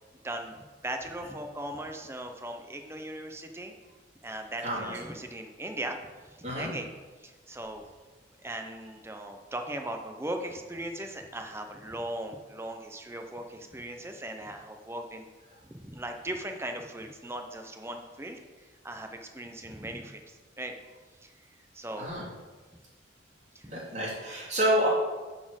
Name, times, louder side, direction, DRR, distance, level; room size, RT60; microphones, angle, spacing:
voice 1, 0.2-0.6 0.8-3.7 4.2-6.0 6.2-6.9 7.2-7.8 8.4-15.3 15.6-18.4 18.8-20.7 21.2-21.3 21.7-22.1 23.5-23.8, right 1 dB, 15° right, 5 dB, 0.7 m, -38 dB
voice 2, 4.6-4.9 6.4-6.7 22.0-22.2 23.6-24.9, equal, 35° right, -6 dB, 3.0 m, -28 dB
9.5 x 4.4 x 6.4 m, 1.3 s
head